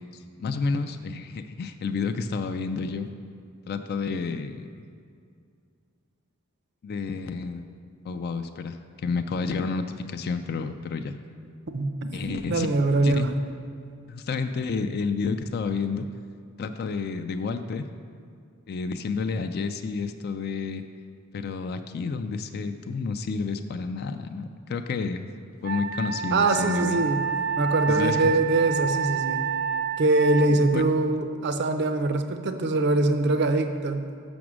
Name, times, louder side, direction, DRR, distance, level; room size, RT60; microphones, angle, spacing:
voice 1, 0.1-3.1 3.7-4.7 6.8-7.7 8.0-11.2 12.1-12.7 13.0-13.3 14.1-16.1 16.6-17.9 18.7-20.8 21.3-25.3 25.6-27.0 27.9-28.3 30.5-30.8, left 4 dB, 50° left, 8 dB, 0.3 m, -30 dB
voice 2, 11.7-13.3 26.3-27.2 27.6-29.4 30.0-34.1, right 2 dB, 55° right, 8 dB, 0.5 m, -23 dB
Wind instrument woodwind instrument, 25.6-30.5, right 6 dB, 90° right, 0.8 m, -28 dB
6.1 x 6.0 x 6.1 m, 2.3 s
head